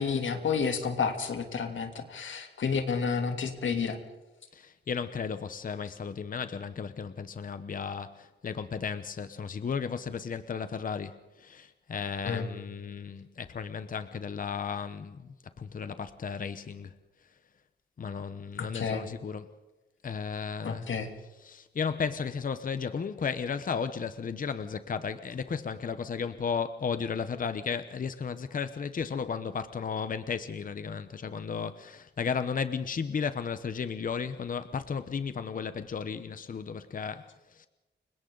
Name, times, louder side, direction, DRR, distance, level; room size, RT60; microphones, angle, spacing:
voice 1, 0.0-4.0 12.2-12.5 18.6-19.0 20.6-21.1, left 5 dB, 90° left, 3.0 m, -30 dB
voice 2, 4.5-17.0 18.0-19.5 20.0-20.9 21.4-37.7, left 6 dB, 45° left, 0.9 m, -34 dB
30.0 x 24.5 x 4.0 m
wide cardioid pair, 165°, 19 cm